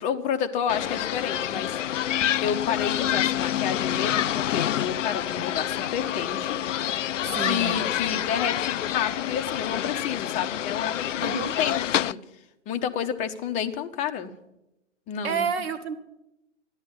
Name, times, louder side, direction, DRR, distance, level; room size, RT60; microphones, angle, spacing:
voice 1, 0.0-1.8 2.4-6.6 7.4-12.2 12.7-14.3 15.1-15.5, left 8 dB, 20° left, 6 dB, 0.8 m, -30 dB
sound 1, 0.7-12.1, left 11 dB, 75° left, 0.5 m, -27 dB
voice 2, 7.3-7.8 11.2-11.5 15.2-15.9, right 5 dB, 55° right, 8 dB, 1.9 m, -29 dB
13.5 x 11.0 x 8.0 m, 0.90 s
hypercardioid pair, 125°, 38 cm